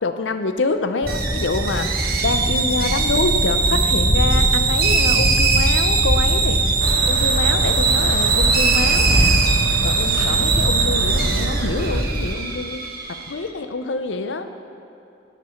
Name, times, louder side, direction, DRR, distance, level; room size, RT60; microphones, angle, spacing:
voice 1, 0.0-1.9 2.2-6.6 7.0-9.4 9.8-14.5, left 3 dB, 75° left, 8 dB, 0.6 m, -26 dB
sound 1, 1.0-12.4, equal, 10° right, 0.5 m, -23 dB
sound 2, 1.1-13.3, right 5 dB, 55° right, 1.1 m, -21 dB
sound 3, 6.8-12.0, right 5 dB, 80° right, 0.4 m, -30 dB
10.5 x 8.2 x 5.7 m, 2.7 s
head